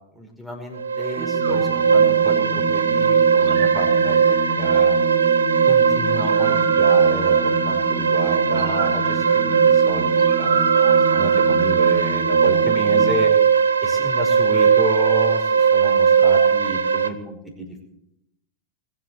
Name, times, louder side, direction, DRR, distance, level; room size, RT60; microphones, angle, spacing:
voice 1, 0.1-5.0 5.7-13.3 13.8-17.8, equal, ahead, 1 dB, 5.3 m, -31 dB
sound 1, 0.8-17.1, right 6 dB, 75° right, 1.0 m, -18 dB
sound 2, 1.2-13.1, right 3 dB, 30° right, 2.3 m, -30 dB
sound 3, 1.4-2.8 3.4-4.7 6.2-7.9 8.6-12.1, right 6 dB, 55° right, 2.2 m, -30 dB
22.0 x 7.8 x 7.8 m, 0.80 s
figure-of-eight pair, 90°, 0 cm